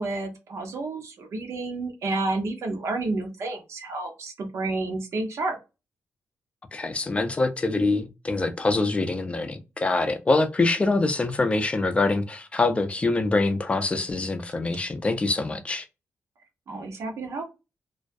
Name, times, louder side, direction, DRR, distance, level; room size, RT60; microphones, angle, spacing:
voice 1, 0.0-5.6 16.7-17.4, right 2 dB, 70° right, 0.7 m, -30 dB
voice 2, 6.7-15.9, left 3 dB, 25° left, 0.4 m, -24 dB
2.3 x 2.1 x 2.5 m
cardioid pair, 105°, 5 cm